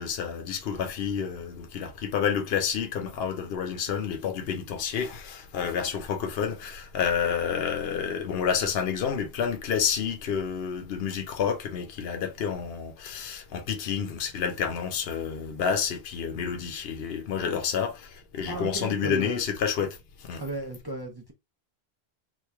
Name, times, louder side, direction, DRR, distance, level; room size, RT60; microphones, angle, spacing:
voice 1, 0.0-18.0 18.3-19.9 20.3-20.4, left 7 dB, 75° left, 0.9 m, -29 dB
voice 2, 18.5-19.4 20.4-21.3, right 1 dB, 30° right, 0.6 m, -35 dB
3.0 x 2.6 x 3.4 m
omnidirectional pair, 1.0 m